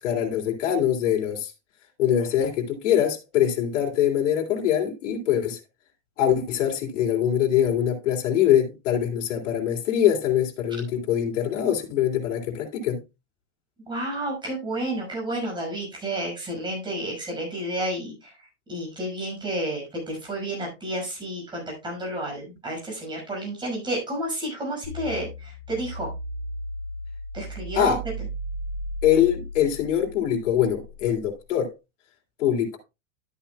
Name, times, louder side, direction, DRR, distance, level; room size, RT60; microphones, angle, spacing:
voice 1, 0.0-1.5 2.0-5.6 6.2-13.0 27.7-28.0 29.0-31.7 32.4-32.8, left 10 dB, 75° left, 3.1 m, -23 dB
voice 2, 13.9-26.1 27.3-28.0, right 1 dB, 10° right, 5.9 m, -31 dB
sound 1, 24.8-31.1, equal, 30° left, 4.4 m, -35 dB
12.5 x 8.6 x 2.3 m
supercardioid pair, 155°, 37 cm